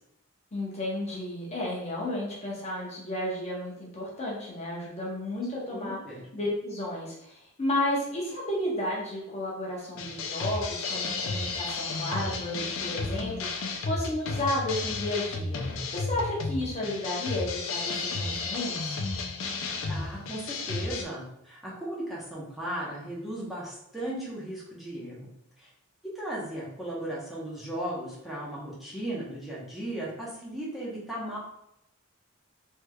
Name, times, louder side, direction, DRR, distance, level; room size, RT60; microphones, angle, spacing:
voice 1, 0.5-6.0 6.3-19.0, left 1 dB, 30° left, -4 dB, 0.7 m, -32 dB
voice 2, 5.7-6.2 19.9-25.3 25.6-25.7 26.1-31.4, right 1 dB, ahead, -7 dB, 0.8 m, -36 dB
sound 1, 10.0-21.0, left 3 dB, 65° left, 0.4 m, -33 dB
3.3 x 3.2 x 2.2 m, 0.79 s
head